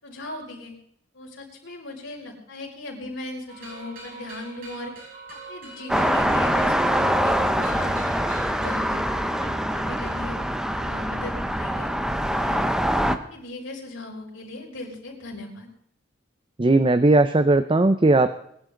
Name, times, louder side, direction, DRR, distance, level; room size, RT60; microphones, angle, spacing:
voice 1, 0.0-0.7 1.1-4.9 5.3-7.9 8.3-10.4 10.8-11.9 12.3-12.7 13.0-15.7, left 1 dB, 70° left, -2 dB, 5.8 m, -38 dB
sound 1, 3.5-8.9, right 1 dB, 50° right, 6.6 m, -42 dB
sound 2, 5.9-13.2, equal, 5° right, 0.9 m, -24 dB
voice 2, 16.6-18.4, right 2 dB, 25° right, 11 dB, 0.6 m, -18 dB
22.0 x 12.0 x 3.9 m, 0.70 s
head